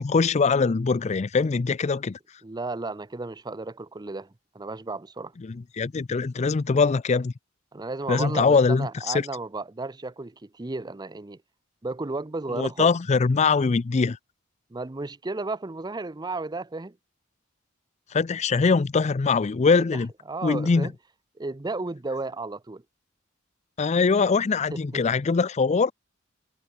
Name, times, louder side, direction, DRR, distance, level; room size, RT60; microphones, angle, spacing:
voice 1, 0.0-2.2 5.4-7.3 8.1-9.3 12.6-14.2 18.1-20.1 20.4-20.9 23.8-25.9, left 4 dB, 35° left, 0.4 m, -22 dB
voice 2, 2.4-4.3 4.5-5.3 7.7-11.4 11.8-12.9 14.7-17.0 19.8-20.0 20.3-20.9 21.4-22.8 24.7-24.8, right 3 dB, 20° right, 0.6 m, -33 dB
head